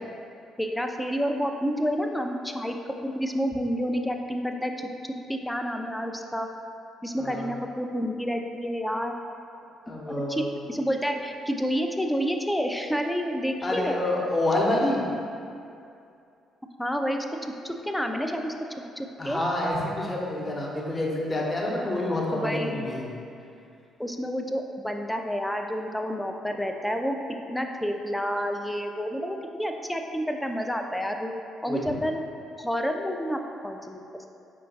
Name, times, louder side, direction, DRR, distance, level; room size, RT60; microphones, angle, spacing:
voice 1, 0.6-2.8 3.0-4.9 5.3-6.5 7.0-9.1 10.3-10.4 10.7-14.0 16.8-17.3 17.6-18.5 19.0-19.4 22.3-22.9 24.0-27.2 27.5-31.3 31.6-32.2 32.6-34.3, equal, 5° left, 4 dB, 0.4 m, -29 dB
voice 2, 7.2-7.5 9.9-10.5 13.6-15.0 19.2-23.1 31.7-31.8, left 1 dB, 25° left, -3 dB, 0.8 m, -27 dB
5.0 x 2.3 x 3.9 m, 2.5 s
figure-of-eight pair, 45°, 0 cm